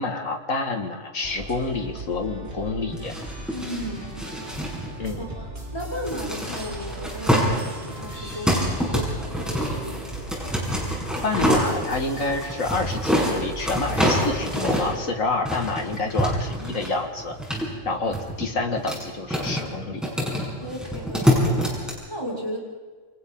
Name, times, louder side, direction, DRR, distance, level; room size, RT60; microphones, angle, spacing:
voice 1, 0.0-3.1 5.0-5.3 11.2-17.3 17.9-20.0, left 3 dB, 85° left, 4 dB, 2.5 m, -28 dB
sound 1, 1.2-14.9, right 1 dB, 45° right, 4.0 m, -39 dB
sound 2, 2.9-21.9, equal, ahead, 6.8 m, -27 dB
voice 2, 3.5-4.2 4.6-8.5 8.9-10.1 16.0-16.1 18.0-18.1 18.5-18.7 20.6-22.6, equal, 20° left, -3 dB, 6.0 m, -35 dB
29.0 x 25.0 x 4.0 m, 1.4 s
omnidirectional pair, 1.3 m